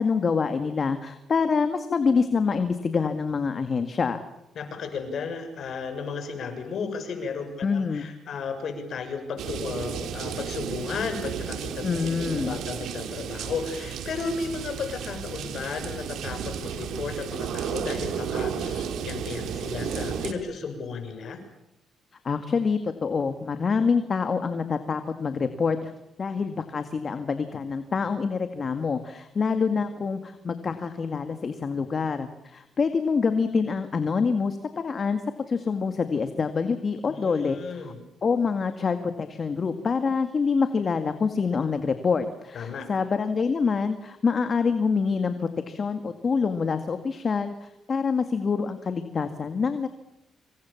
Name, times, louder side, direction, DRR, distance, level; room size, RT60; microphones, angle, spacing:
voice 1, 0.0-4.2 7.6-8.0 11.8-12.6 22.2-25.9 26.2-35.2 35.5-37.9 38.2-49.9, left 5 dB, 40° left, 8 dB, 2.0 m, -26 dB
voice 2, 4.6-21.4 37.1-38.0 42.5-42.9, left 5 dB, 60° left, 7 dB, 6.8 m, -34 dB
sound 1, 9.4-20.3, right 7 dB, 75° right, 3.1 m, -33 dB
27.0 x 26.5 x 7.2 m, 0.87 s
cardioid pair, 90°, 0 cm